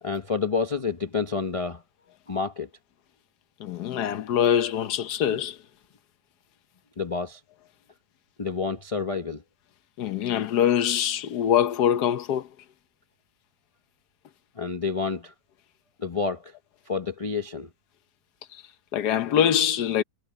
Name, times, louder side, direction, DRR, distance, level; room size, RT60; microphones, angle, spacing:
voice 1, 0.0-1.8 2.3-2.7 7.0-7.4 8.4-9.4 14.6-15.3 16.0-16.5 16.9-17.7, left 5 dB, 35° left, 0.5 m, -29 dB
voice 2, 3.6-5.6 10.0-12.5 18.9-20.0, left 9 dB, 60° left, 1.3 m, -23 dB
omnidirectional pair, 2.2 m